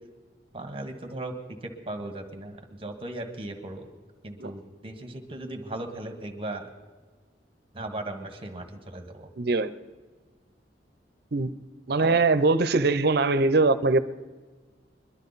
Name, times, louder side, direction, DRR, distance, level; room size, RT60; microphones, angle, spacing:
voice 1, 0.5-1.4 1.6-3.9 4.2-6.7 7.7-9.3 12.0-12.2, right 1 dB, 30° right, 4 dB, 1.5 m, -37 dB
voice 2, 9.4-9.7 11.3-11.5 11.9-14.0, right 3 dB, 65° right, 13 dB, 0.7 m, -22 dB
22.0 x 12.0 x 4.1 m, 1.4 s
head